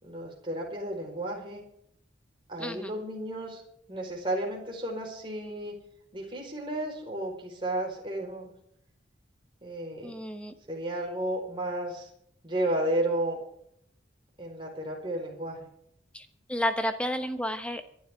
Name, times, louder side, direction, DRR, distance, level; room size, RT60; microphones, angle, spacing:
voice 1, 0.0-1.6 2.5-3.6 3.9-5.7 6.1-8.5 9.6-10.1 10.7-12.1 12.4-13.4 14.4-15.7, right 1 dB, 25° right, -1 dB, 4.6 m, -32 dB
voice 2, 2.6-2.9 10.0-10.5 16.1-17.8, equal, 5° left, 7 dB, 1.2 m, -31 dB
25.0 x 11.5 x 3.7 m, 0.71 s
head